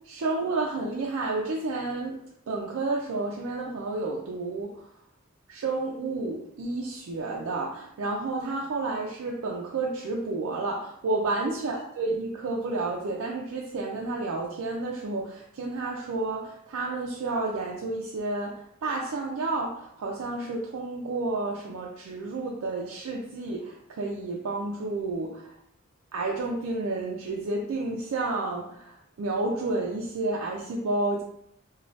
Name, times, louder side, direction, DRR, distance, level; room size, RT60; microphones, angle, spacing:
voice 1, 0.0-2.2 2.5-4.9 5.5-25.6 26.1-31.2, right 2 dB, 80° right, -2 dB, 0.4 m, -31 dB
3.1 x 2.2 x 2.6 m, 0.74 s
head